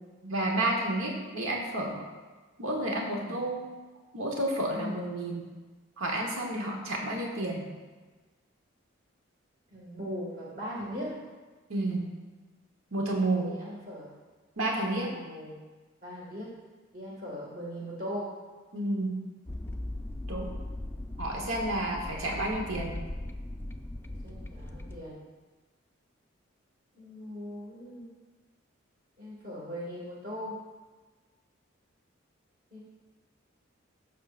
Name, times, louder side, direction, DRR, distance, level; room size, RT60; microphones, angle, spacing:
voice 1, 0.2-2.0 2.6-3.6 4.1-5.4 6.0-7.7 11.7-12.1 12.9-13.6 14.6-15.1 18.7-19.3 20.3-20.6 21.2-23.0, right 1 dB, 90° right, 0 dB, 1.3 m, -30 dB
voice 2, 9.7-11.2 13.4-14.1 14.9-15.6 16.0-16.5 16.9-18.3 24.2-25.2 26.9-28.1 29.2-30.6 32.7-32.8, equal, 45° right, -7 dB, 1.9 m, -39 dB
sound 1, 19.5-25.0, left 1 dB, 10° left, 0.4 m, -39 dB
15.0 x 6.4 x 2.5 m, 1.3 s
head